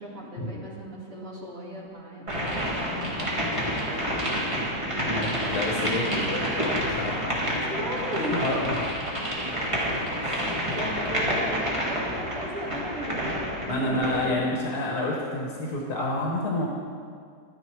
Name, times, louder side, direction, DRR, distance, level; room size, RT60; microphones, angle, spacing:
voice 1, 0.0-5.0 7.4-8.6 9.7-9.9 10.3-14.8, equal, 55° right, -6 dB, 2.6 m, -37 dB
sound 1, 2.3-14.3, equal, 20° right, 1.7 m, -29 dB
voice 2, 5.1-7.3 8.3-8.8 10.2-10.6 13.7-16.7, left 1 dB, 65° left, -2 dB, 1.8 m, -29 dB
12.0 x 10.0 x 4.6 m, 2.1 s
omnidirectional pair, 1.7 m